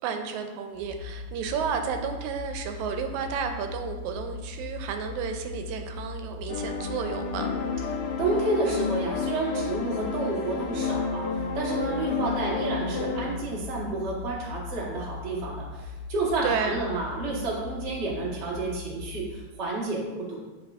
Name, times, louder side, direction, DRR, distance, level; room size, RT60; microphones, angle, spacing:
voice 1, 0.0-7.5 16.4-16.8, right 6 dB, 85° right, 6 dB, 1.9 m, -32 dB
sound 1, 0.7-19.3, left 4 dB, 30° left, 1.5 m, -40 dB
sound 2, 6.5-13.3, left 5 dB, 75° left, 1.3 m, -30 dB
voice 2, 8.2-20.4, right 3 dB, 55° right, -4 dB, 0.7 m, -30 dB
8.2 x 4.7 x 2.4 m, 1.2 s
omnidirectional pair, 3.3 m